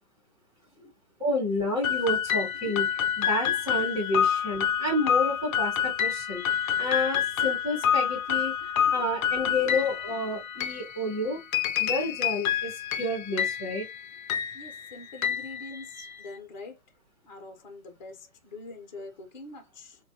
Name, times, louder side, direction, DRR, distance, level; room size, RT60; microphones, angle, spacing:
voice 1, 1.2-2.9 3.2-11.4 11.8-13.9 15.7-16.2, left 1 dB, 10° right, 0.5 m, -30 dB
sound 1, 1.8-16.3, left 9 dB, 70° left, 0.6 m, -28 dB
voice 2, 14.5-16.8 17.3-20.0, left 2 dB, 30° left, 0.7 m, -44 dB
3.2 x 2.2 x 2.7 m
hypercardioid pair, 155°, 43 cm